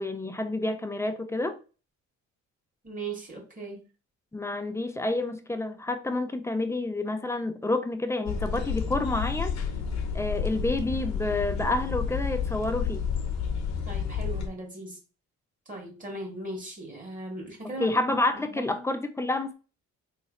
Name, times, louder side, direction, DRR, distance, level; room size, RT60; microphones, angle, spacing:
voice 1, 0.0-1.6 4.3-9.6 10.1-13.1 17.6-19.5, left 2 dB, 10° left, 0.5 m, -29 dB
voice 2, 2.8-3.9 13.8-15.0 15.6-18.0 18.3-18.8, right 2 dB, 25° right, 1.7 m, -38 dB
sound 1, 8.3-14.5, left 6 dB, 65° left, 0.9 m, -30 dB
3.9 x 3.1 x 2.5 m
cardioid pair, 90°, 30 cm